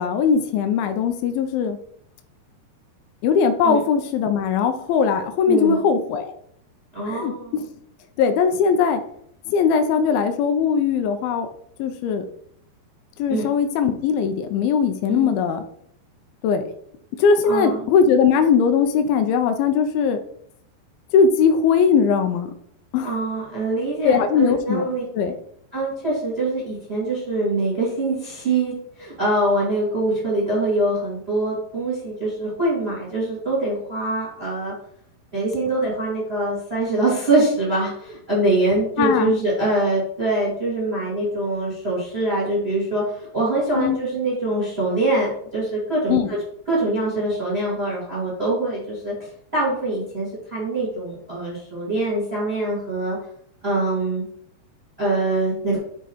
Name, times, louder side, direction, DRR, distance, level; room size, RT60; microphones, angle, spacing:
voice 1, 0.0-1.8 3.2-6.3 7.1-7.3 8.2-9.0 9.5-11.5 11.8-12.3 13.2-15.6 16.4-16.7 17.2-20.2 21.1-22.5 22.9-23.1 24.0-24.8 25.2-25.4 39.0-39.3 43.8-44.0 46.1-46.3, left 6 dB, 85° left, 7 dB, 2.2 m, -19 dB
voice 2, 5.5-5.8 6.9-7.7 13.3-13.5 15.1-15.4 17.5-17.9 23.0-25.0 25.7-34.7 35.3-49.1 49.5-53.2 53.6-54.2 55.0-55.8, right 2 dB, 25° right, -5 dB, 1.3 m, -24 dB
7.1 x 3.6 x 4.3 m, 0.67 s
omnidirectional pair, 4.7 m